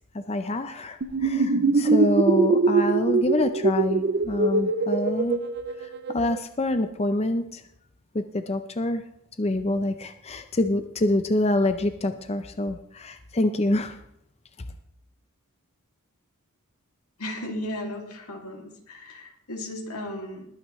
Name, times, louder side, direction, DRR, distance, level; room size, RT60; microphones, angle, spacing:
voice 1, 0.1-5.4 5.8-7.6 8.1-9.0 9.4-14.0, left 1 dB, 30° left, 9 dB, 0.6 m, -26 dB
sound 1, 1.0-6.4, right 3 dB, 45° right, 0.5 m, -23 dB
voice 2, 17.2-20.4, left 1 dB, 90° left, 1 dB, 2.6 m, -35 dB
21.0 x 9.7 x 3.2 m, 0.77 s
head